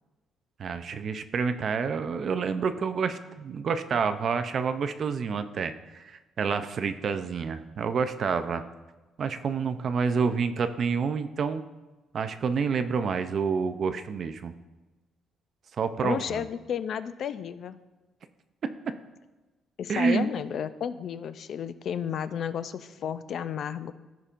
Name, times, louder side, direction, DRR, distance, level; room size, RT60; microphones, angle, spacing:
voice 1, 0.6-8.6 9.2-11.6 12.1-14.5 15.8-16.5 19.9-20.3, right 5 dB, 40° right, 10 dB, 0.4 m, -28 dB
voice 2, 16.0-17.8 19.8-23.9, left 8 dB, 50° left, 13 dB, 0.3 m, -32 dB
15.5 x 5.2 x 2.5 m, 1.2 s
cardioid pair, 175°, 0 cm